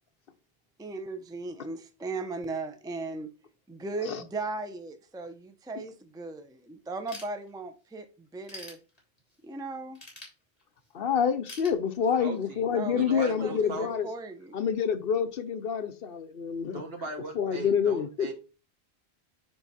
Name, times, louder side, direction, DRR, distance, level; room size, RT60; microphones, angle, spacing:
voice 1, 0.8-3.3 3.7-8.8 9.4-10.0 12.7-14.5, right 3 dB, 5° right, 0.6 m, -37 dB
Ratchet pawl / Tools, 7.1-7.9 8.3-9.4 10.0-10.9 11.5-12.4, left 2 dB, 35° left, 3.2 m, -46 dB
voice 2, 10.9-14.1 14.5-16.8 17.3-18.3, left 7 dB, 65° left, 0.9 m, -27 dB
voice 3, 12.2-12.6 13.0-13.9 16.7-18.3, right 3 dB, 65° right, 1.8 m, -39 dB
9.5 x 3.6 x 4.1 m
omnidirectional pair, 1.1 m